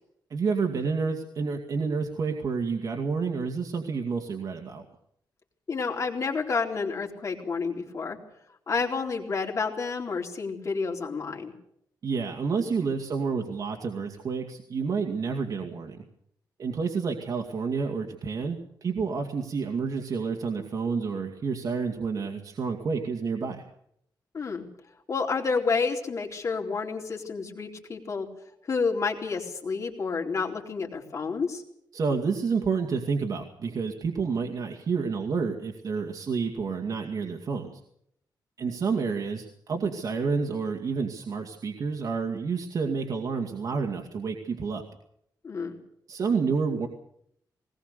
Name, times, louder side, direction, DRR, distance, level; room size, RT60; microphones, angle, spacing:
voice 1, 0.3-4.9 12.0-16.0 16.6-23.6 31.9-37.8 38.6-44.8 46.1-46.9, right 5 dB, 50° right, 3 dB, 2.3 m, -29 dB
voice 2, 5.7-8.2 8.7-11.5 24.3-24.7 25.1-28.3 28.7-31.6 45.4-45.8, left 4 dB, 40° left, 1 dB, 4.0 m, -29 dB
20.5 x 19.5 x 6.8 m, 0.72 s
wide cardioid pair, 135°, 8 cm